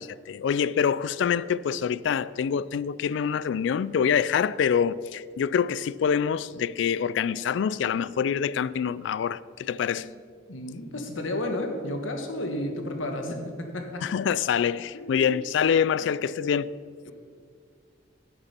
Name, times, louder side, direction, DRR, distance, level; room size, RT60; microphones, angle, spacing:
voice 1, 0.0-10.0 14.0-16.7, left 7 dB, 65° left, 0.3 m, -25 dB
voice 2, 10.5-14.0 14.9-15.3 17.0-17.1, left 1 dB, 85° left, 1.4 m, -32 dB
11.0 x 6.8 x 5.9 m
head